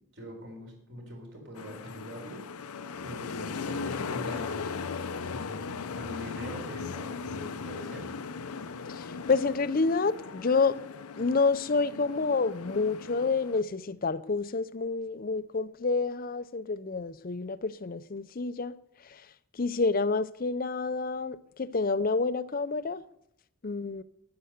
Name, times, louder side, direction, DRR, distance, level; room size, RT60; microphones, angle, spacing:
voice 1, 0.1-2.7 3.0-4.8 5.3-8.1, equal, 55° right, 4.1 m, -43 dB
sound 1, 1.6-13.6, left 5 dB, 90° left, 0.7 m, -38 dB
voice 2, 8.9-10.8 11.2-18.7 19.1-19.2 19.5-23.0 23.6-24.0, left 4 dB, 40° left, 0.5 m, -28 dB
10.5 x 10.0 x 6.6 m
head